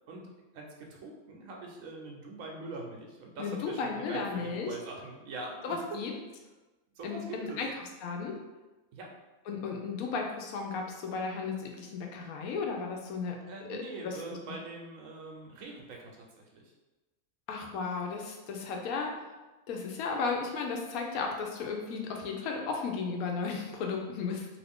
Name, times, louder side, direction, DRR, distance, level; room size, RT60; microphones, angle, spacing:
voice 1, 0.5-6.0 7.0-7.6 8.9-9.1 13.5-16.7, right 3 dB, 75° right, 0 dB, 1.0 m, -43 dB
voice 2, 3.4-4.7 5.6-6.1 7.0-7.7 8.0-8.4 9.5-13.4 13.7-14.2 17.5-19.3 19.7-24.5, left 4 dB, 85° left, 1 dB, 1.1 m, -34 dB
2.8 x 2.5 x 3.4 m, 1.1 s
omnidirectional pair, 1.5 m